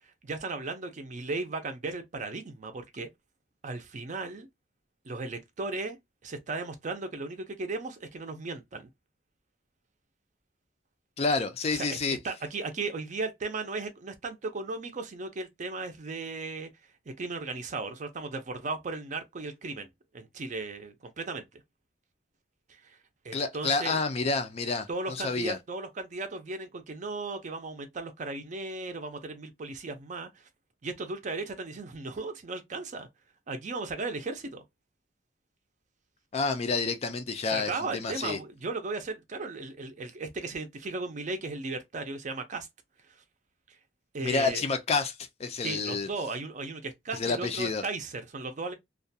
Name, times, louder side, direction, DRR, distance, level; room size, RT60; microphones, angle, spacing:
voice 1, 0.2-3.1 3.6-4.5 5.0-6.0 6.2-8.9 11.7-12.0 12.2-16.7 17.2-19.9 20.1-21.4 22.8-23.0 23.2-24.0 24.9-30.4 30.8-33.1 33.5-34.6 37.5-42.7 43.7-43.8 44.1-44.6 45.6-48.7, right 3 dB, 40° right, 0.5 m, -36 dB
voice 2, 11.2-12.2 23.3-25.6 36.3-38.4 44.2-46.1 47.1-47.8, left 4 dB, 35° left, 0.4 m, -29 dB
2.3 x 2.2 x 2.6 m
head